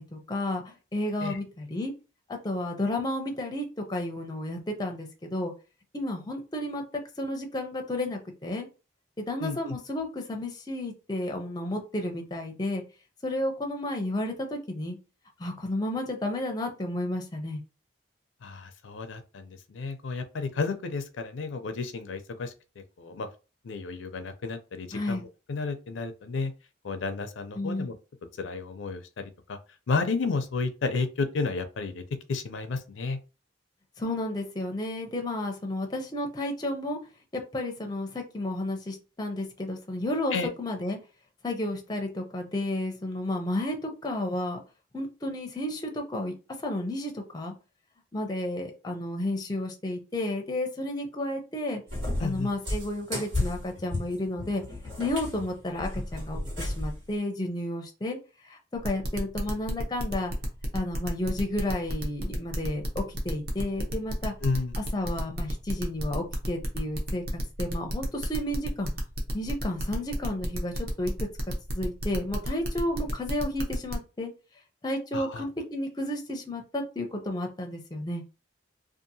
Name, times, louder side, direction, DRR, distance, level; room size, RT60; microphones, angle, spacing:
voice 1, 0.0-1.9 2.3-5.5 5.9-6.8 7.2-8.7 9.2-12.8 13.2-15.0 15.4-17.6 24.9-25.2 27.5-27.9 34.0-37.0 37.3-41.0 41.4-44.6 44.9-46.3 46.6-47.5 48.1-51.8 52.2-58.2 58.4-60.3 60.7-64.3 64.8-67.2 67.6-68.9 69.3-71.1 71.7-74.3 74.8-78.2, left 1 dB, 20° left, 3 dB, 0.5 m, -32 dB
voice 2, 9.4-9.8 18.4-23.3 23.6-26.5 26.8-27.9 28.4-29.6 29.9-32.0 32.3-33.2 40.3-40.5 52.2-52.5 64.4-64.7 75.1-75.4, left 4 dB, 85° left, 8 dB, 0.5 m, -32 dB
Cat, 51.9-57.0, left 1 dB, 80° right, 1.6 m, -33 dB
sound 1, 58.8-73.9, equal, 55° right, 0.7 m, -33 dB
2.7 x 2.4 x 2.7 m, 0.31 s
head